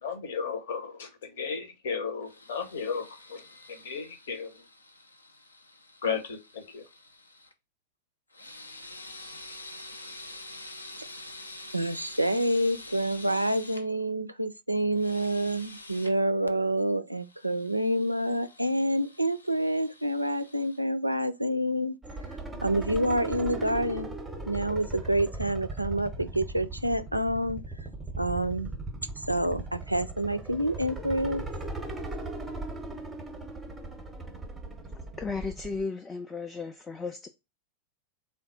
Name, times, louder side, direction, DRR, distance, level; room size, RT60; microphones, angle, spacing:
voice 1, 0.0-3.4 3.7-4.5 6.0-6.8, left 6 dB, 60° left, 0.8 m, -34 dB
sound 1, 2.3-7.5 8.3-13.8 14.9-16.1 17.2-20.8, left 2 dB, 80° left, 0.5 m, -47 dB
voice 2, 11.7-22.0 22.3-24.1 24.5-27.9 28.2-28.7 29.2-31.4, right 1 dB, 85° right, 0.3 m, -28 dB
sound 2, 22.0-35.8, right 2 dB, 5° right, 0.7 m, -38 dB
voice 3, 35.2-37.3, left 4 dB, 15° left, 0.3 m, -35 dB
3.5 x 2.3 x 3.9 m
figure-of-eight pair, 90°, 0 cm